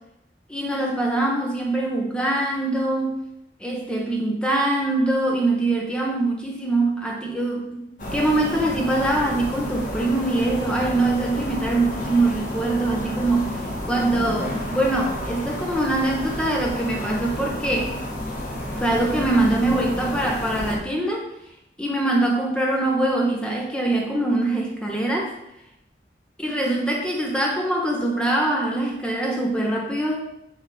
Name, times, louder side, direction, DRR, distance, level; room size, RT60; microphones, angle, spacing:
voice 1, 0.5-3.1 3.6-13.6 13.9-17.9 18.8-21.3 21.8-25.3 26.4-30.2, right 2 dB, 5° left, -1 dB, 1.1 m, -23 dB
sound 1, 8.0-20.8, left 1 dB, 45° left, 1.6 m, -30 dB
7.9 x 4.3 x 3.9 m, 0.84 s
head